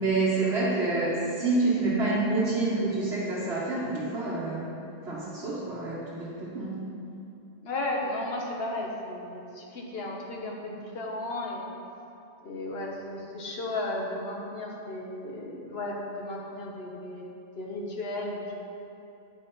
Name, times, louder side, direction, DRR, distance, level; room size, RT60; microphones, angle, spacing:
voice 1, 0.0-4.7 5.0-6.8, right 3 dB, 75° right, -9 dB, 1.4 m, -27 dB
voice 2, 7.6-11.7 12.4-18.6, left 2 dB, 70° left, -1 dB, 1.3 m, -34 dB
9.2 x 4.2 x 5.3 m, 2.8 s
omnidirectional pair, 1.1 m